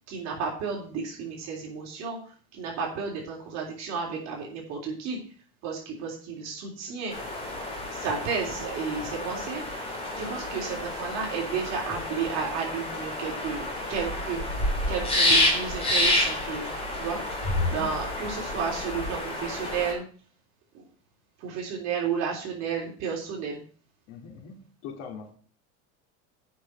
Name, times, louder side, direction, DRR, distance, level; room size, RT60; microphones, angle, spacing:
voice 1, 0.1-2.2 2.5-5.2 5.6-7.2 7.9-9.6 10.1-14.4 14.9-20.0 20.7-20.8 21.4-23.6, right 6 dB, 50° right, -1 dB, 3.5 m, -32 dB
sound 1, 7.1-19.9, left 1 dB, 15° left, 3.2 m, -29 dB
voice 2, 17.6-17.9 24.1-25.3, left 5 dB, 60° left, 1 dB, 2.6 m, -41 dB
8.1 x 6.1 x 7.9 m, 0.43 s
supercardioid pair, 145°, 34 cm